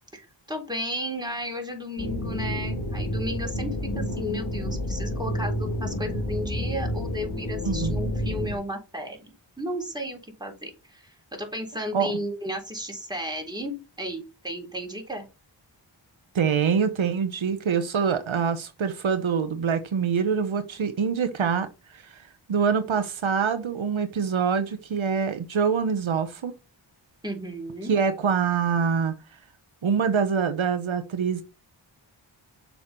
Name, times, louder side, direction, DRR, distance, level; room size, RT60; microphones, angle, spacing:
voice 1, 0.1-15.2 27.2-28.0, equal, 10° right, 3.6 m, -34 dB
sound 1, 2.0-8.5, left 1 dB, 55° left, 2.6 m, -29 dB
voice 2, 16.3-21.7 21.9-22.2 22.5-26.5 27.9-29.1 29.8-31.4, right 6 dB, 90° right, 0.9 m, -25 dB
6.7 x 5.6 x 4.3 m
cardioid pair, 40°, 46 cm